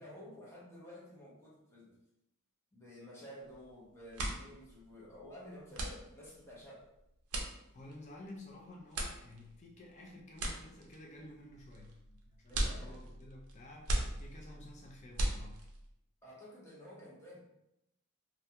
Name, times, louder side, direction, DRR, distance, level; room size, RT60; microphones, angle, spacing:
voice 1, 0.0-1.9 2.7-6.9 12.5-13.0 16.2-17.4, left 1 dB, 10° left, -6 dB, 0.7 m, -52 dB
sound 1, 3.4-3.7 4.0-15.9, right 1 dB, 85° right, 0.5 m, -39 dB
voice 2, 7.7-15.6, left 1 dB, 30° left, -1 dB, 0.3 m, -52 dB
2.4 x 2.1 x 2.7 m, 0.84 s
head